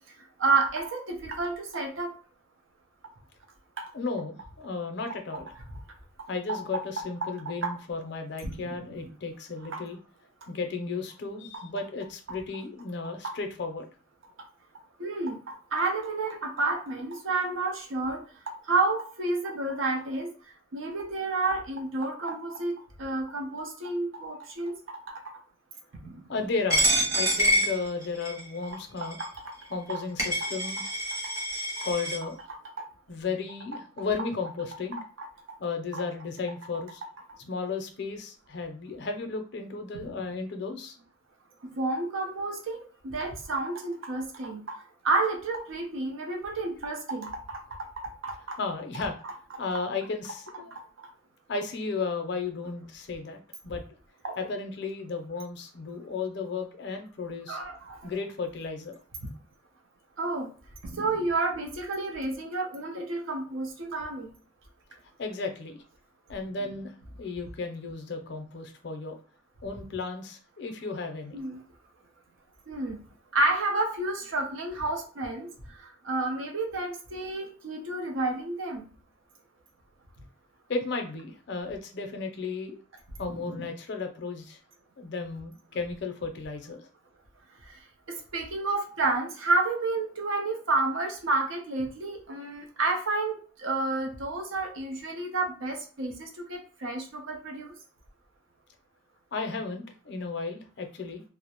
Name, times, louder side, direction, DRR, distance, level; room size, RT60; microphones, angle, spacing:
voice 1, 0.4-2.1 3.8-3.9 5.7-5.8 7.0-7.1 7.6-7.7 8.4-8.9 9.7-9.8 13.2-13.4 15.0-20.3 20.7-25.2 26.0-26.3 29.0-29.5 29.9-30.0 30.4-30.5 31.8-31.9 32.5-32.9 34.9-35.6 35.9-36.0 40.0-40.1 41.8-44.8 45.0-48.6 49.2-49.3 50.7-51.1 54.2-54.4 57.5-58.1 60.2-60.5 60.8-64.3 71.3-71.6 72.7-73.0 73.3-78.9 83.2-83.7 87.7-87.8 88.1-97.8, right 3 dB, 75° right, 5 dB, 0.6 m, -30 dB
voice 2, 3.9-5.5 6.3-10.0 10.5-13.9 26.3-29.2 29.7-30.8 31.8-32.4 33.1-35.0 35.6-37.0 37.5-41.0 48.6-49.2 49.6-50.7 51.5-53.8 54.4-57.6 58.0-59.0 65.2-65.8 66.3-69.2 69.6-71.4 80.7-82.8 83.2-84.6 85.0-86.9 99.3-101.2, left 4 dB, 55° left, 5 dB, 0.5 m, -34 dB
Coin (dropping), 26.7-28.5 29.1-29.2 29.9-30.0 30.2-32.2, equal, 15° right, 0.7 m, -26 dB
2.3 x 2.0 x 2.8 m, 0.39 s
head